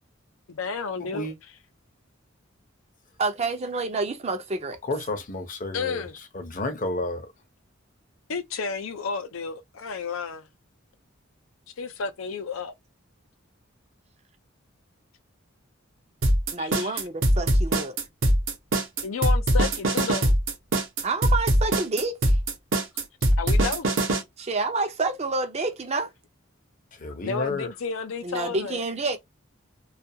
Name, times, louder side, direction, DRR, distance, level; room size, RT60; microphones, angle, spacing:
voice 1, 0.5-1.6 5.7-6.1 8.3-10.5 11.8-12.7 16.6-17.0 19.0-20.4 23.4-23.9 27.2-28.8, left 5 dB, 80° left, 0.5 m, -32 dB
voice 2, 1.0-1.3 4.9-6.0 6.5-7.2 27.0-27.7, left 2 dB, 40° left, 0.7 m, -30 dB
voice 3, 3.2-4.8 16.5-18.0 21.0-22.4 24.4-26.1 28.2-29.2, right 3 dB, 30° right, 0.5 m, -28 dB
sound 1, 16.2-24.2, right 1 dB, 65° right, 0.8 m, -21 dB
2.4 x 2.3 x 2.7 m
head